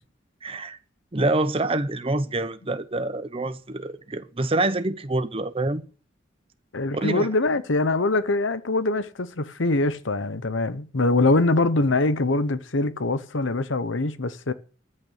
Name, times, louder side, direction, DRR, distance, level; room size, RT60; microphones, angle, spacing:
voice 1, 0.4-0.8 1.1-5.8 6.9-7.3, right 2 dB, 30° right, 0.8 m, -26 dB
voice 2, 6.7-14.5, left 2 dB, 75° left, 1.0 m, -23 dB
14.0 x 6.5 x 8.7 m
head